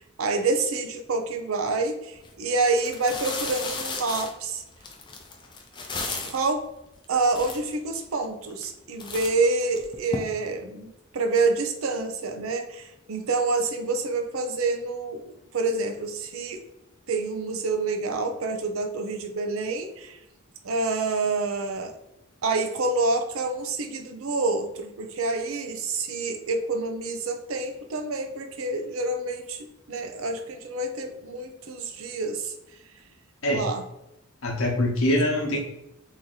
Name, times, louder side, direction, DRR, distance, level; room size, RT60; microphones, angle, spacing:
voice 1, 0.0-4.6 6.2-6.6 7.1-16.6 17.1-20.2 20.6-21.9 22.4-32.5 33.5-33.9, right 3 dB, 80° right, 5 dB, 0.5 m, -27 dB
sound 1, 2.2-2.3 2.7-6.5 7.0-7.1 7.3-8.0 8.5-8.7 9.0-10.2, left 3 dB, 20° left, 0.4 m, -34 dB
voice 2, 34.4-35.6, left 1 dB, 80° left, 0 dB, 0.9 m, -23 dB
3.0 x 2.6 x 3.9 m, 0.90 s
head